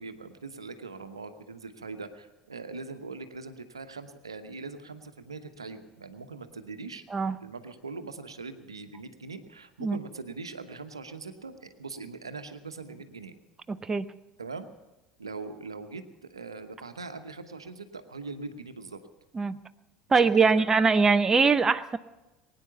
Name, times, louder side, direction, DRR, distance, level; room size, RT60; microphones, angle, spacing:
voice 1, 0.0-7.0 7.4-13.3 14.4-14.7 15.2-19.0 20.1-20.7, right 4 dB, 85° right, 9 dB, 1.0 m, -41 dB
voice 2, 13.7-14.1 19.4-19.6 20.1-22.0, right 4 dB, 20° right, 12 dB, 0.7 m, -22 dB
21.5 x 9.6 x 6.9 m, 1.1 s
figure-of-eight pair, 65°, 3 cm